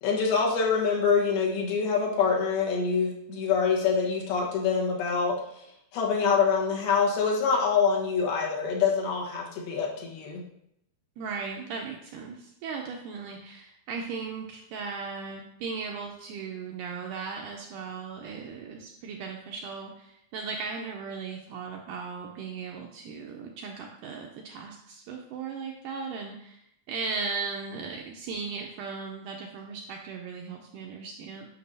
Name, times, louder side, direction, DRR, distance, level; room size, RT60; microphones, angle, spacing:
voice 1, 0.0-5.6 5.9-10.4, left 5 dB, 85° left, -2 dB, 3.2 m, -25 dB
voice 2, 11.2-31.5, right 5 dB, 90° right, 1 dB, 1.9 m, -37 dB
9.3 x 5.9 x 2.7 m, 0.76 s
omnidirectional pair, 4.3 m